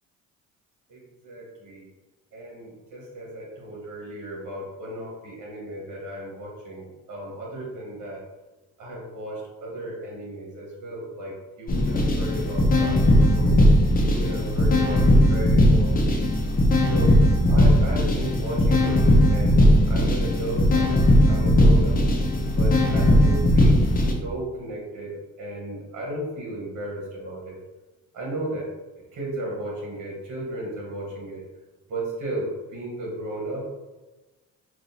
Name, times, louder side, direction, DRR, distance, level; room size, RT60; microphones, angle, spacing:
voice 1, 0.9-1.8 2.3-8.2 8.8-13.6 14.0-16.2 16.8-17.2 17.5-20.9 21.3-21.9 22.5-23.8 24.2-25.1 25.4-27.6 28.1-28.7 29.1-31.4 31.9-33.7, right 1 dB, 70° right, -2 dB, 1.3 m, -34 dB
sound 1, 11.7-24.1, left 1 dB, 30° left, 0.8 m, -18 dB
5.9 x 2.6 x 2.7 m, 1.2 s
cardioid pair, 90°, 30 cm